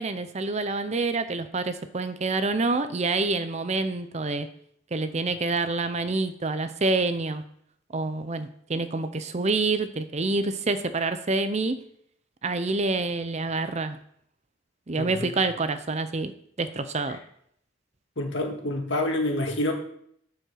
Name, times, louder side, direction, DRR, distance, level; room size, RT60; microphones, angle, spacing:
voice 1, 0.0-4.5 4.9-7.4 7.9-11.8 12.4-14.0 14.9-16.3 16.6-17.2, right 3 dB, 35° right, 11 dB, 0.6 m, -27 dB
voice 2, 15.0-15.3 18.2-19.7, left 1 dB, 65° left, 2 dB, 1.9 m, -27 dB
7.8 x 7.2 x 6.4 m, 0.68 s
head